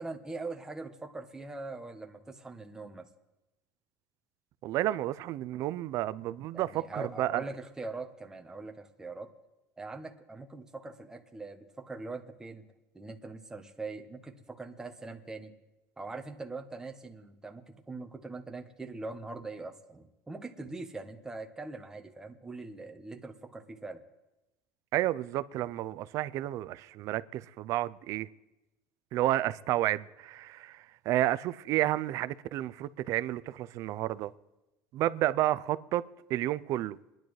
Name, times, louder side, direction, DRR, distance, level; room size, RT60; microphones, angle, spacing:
voice 1, 0.0-3.1 6.5-9.3 9.8-12.6 12.9-15.5 16.0-24.0, right 3 dB, 10° right, 0.9 m, -42 dB
voice 2, 4.6-7.4 24.9-28.3 29.1-34.3 34.9-36.0 36.3-37.0, right 14 dB, 50° right, 0.4 m, -31 dB
25.0 x 10.5 x 3.2 m
cardioid pair, 145°, 7 cm